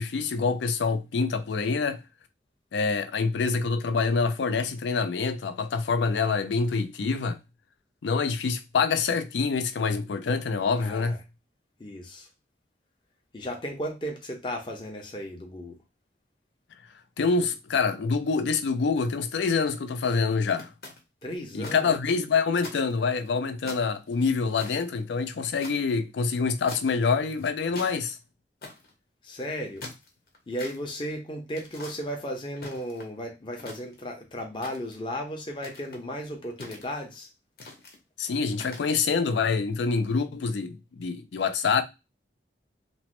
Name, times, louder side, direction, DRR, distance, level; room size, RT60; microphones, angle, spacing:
voice 1, 0.0-2.0 2.7-7.4 8.0-11.2 17.2-20.7 21.5-28.2 38.2-41.8, left 5 dB, 85° left, 0.4 m, -26 dB
voice 2, 10.8-11.2 11.8-12.3 13.3-15.8 21.2-21.9 29.2-29.8 30.5-37.3, equal, 25° left, 0.5 m, -35 dB
sound 1, 19.7-20.0 20.6-21.8 22.1-22.2 22.6-23.3 23.7-25.8 26.7-27.1 27.4-28.0 28.6-28.9 29.6-30.8 31.5-32.0 32.6-33.2 33.6-34.2 34.6-35.1 35.6-36.0 36.6-37.1 37.6-38.0 38.5-38.9, left 3 dB, 60° left, 0.8 m, -43 dB
3.0 x 2.1 x 2.9 m
head